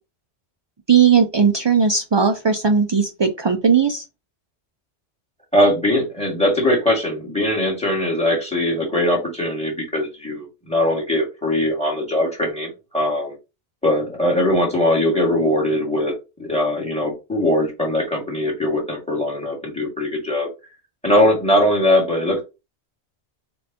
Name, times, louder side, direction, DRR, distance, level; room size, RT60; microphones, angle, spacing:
voice 1, 0.9-4.0, right 6 dB, 45° right, 5 dB, 0.3 m, -17 dB
voice 2, 5.5-13.4 13.8-16.1 16.4-20.5 21.0-22.4, left 1 dB, 5° left, -1 dB, 1.8 m, -20 dB
6.6 x 2.6 x 2.8 m, 0.27 s
omnidirectional pair, 1.1 m